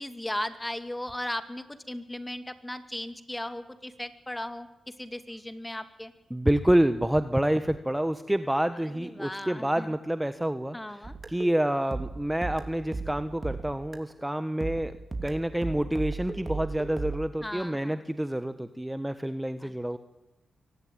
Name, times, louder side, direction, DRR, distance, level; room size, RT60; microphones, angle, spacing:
voice 1, 0.0-4.7 5.0-6.1 8.9-9.9 10.7-11.1 17.4-18.0 19.6-19.7, left 1 dB, 15° left, 9 dB, 2.5 m, -36 dB
voice 2, 6.3-10.8 11.3-15.0 15.2-20.0, right 1 dB, 10° right, 10 dB, 1.4 m, -28 dB
sound 1, 11.0-14.2 14.6-17.3, right 3 dB, 30° right, 3.1 m, -36 dB
24.0 x 18.0 x 9.4 m, 0.99 s
supercardioid pair, 50°, 0 cm